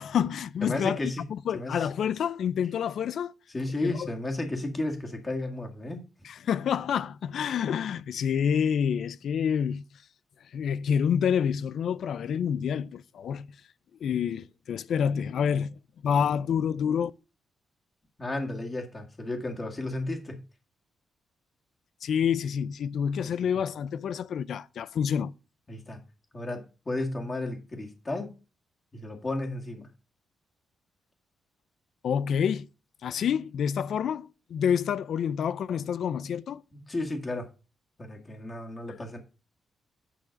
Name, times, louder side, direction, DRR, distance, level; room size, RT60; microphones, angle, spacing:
voice 1, 0.0-1.0 1.3-3.3 3.8-4.1 6.2-9.8 10.5-13.5 14.0-15.8 16.0-17.1 22.0-25.3 32.0-32.7 33.0-36.6, left 8 dB, 65° left, 0.5 m, -28 dB
voice 2, 0.6-1.2 1.5-1.9 3.5-6.0 18.2-20.4 23.2-23.3 25.7-26.0 26.3-28.3 28.9-29.9 36.7-37.5 38.0-39.2, left 2 dB, 20° left, 1.9 m, -33 dB
9.1 x 6.2 x 5.2 m
cardioid pair, 145°, 0 cm